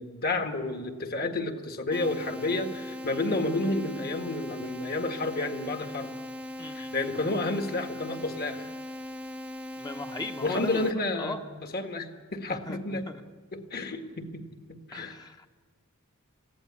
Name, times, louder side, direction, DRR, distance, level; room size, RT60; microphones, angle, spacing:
voice 1, 0.0-6.1 6.7-8.6 10.4-11.4 11.7-13.0 13.5-14.4 14.7-15.2, left 2 dB, 45° left, 7 dB, 1.8 m, -31 dB
sound 1, 1.9-10.9, left 1 dB, 5° right, 0.7 m, -39 dB
voice 2, 6.6-7.0 9.8-10.9 11.2-11.4 12.5-13.2 14.9-15.5, left 2 dB, 20° left, 5 dB, 1.0 m, -38 dB
20.5 x 16.0 x 9.7 m, 1.5 s
head